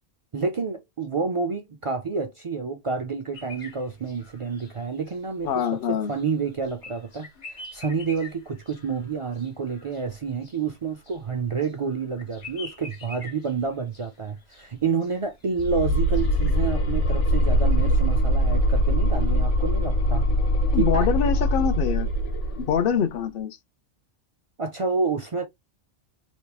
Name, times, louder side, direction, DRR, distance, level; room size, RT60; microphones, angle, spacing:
voice 1, 0.3-20.3 20.7-21.1 24.6-25.5, right 5 dB, 55° right, 0.3 m, -29 dB
sound 1, 3.3-16.5, left 3 dB, 40° left, 1.0 m, -46 dB
voice 2, 5.4-6.1 20.7-22.1 22.6-23.6, left 7 dB, 60° left, 0.7 m, -24 dB
sound 2, 15.6-22.8, equal, 90° left, 1.2 m, -22 dB
3.4 x 3.0 x 2.3 m
omnidirectional pair, 1.2 m